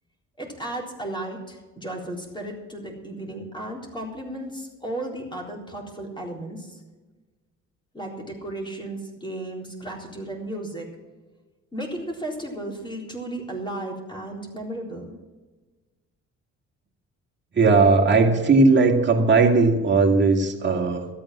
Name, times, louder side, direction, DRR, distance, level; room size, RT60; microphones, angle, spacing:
voice 1, 0.4-6.8 7.9-10.9 11.7-15.1, right 1 dB, 15° left, 0 dB, 4.0 m, -34 dB
voice 2, 17.5-21.1, right 3 dB, 35° right, 1 dB, 2.3 m, -18 dB
13.0 x 8.9 x 7.5 m, 1.2 s
cardioid pair, 90°, 30 cm